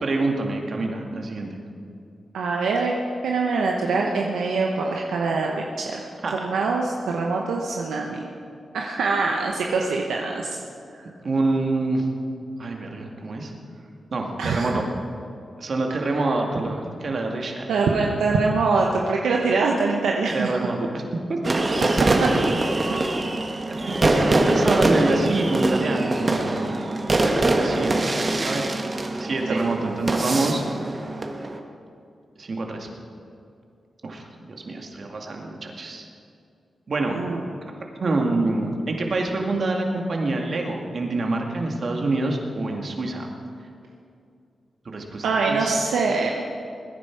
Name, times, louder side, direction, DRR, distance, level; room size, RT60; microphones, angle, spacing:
voice 1, 0.0-1.5 6.2-6.6 11.2-12.1 12.6-13.5 14.1-14.9 15.6-17.6 20.3-21.0 21.3-21.4 23.3-23.4 24.3-26.6 27.5-28.1 28.4-28.6 29.2-30.6 32.4-32.9 34.0-34.2 34.5-36.1 36.9-37.2 38.0-43.3 44.9-45.8, right 2 dB, 60° right, 1 dB, 2.2 m, -26 dB
voice 2, 2.3-3.0 3.2-6.0 6.3-8.2 8.7-10.5 14.4-14.8 16.1-16.3 17.7-20.7 22.2-22.3 29.5-29.6 37.1-37.4 45.2-46.3, right 4 dB, 90° right, 0 dB, 1.0 m, -24 dB
sound 1, 21.4-31.6, right 2 dB, 45° right, 1.5 m, -23 dB
21.0 x 10.0 x 4.8 m, 2.5 s
cardioid pair, 50°, 0 cm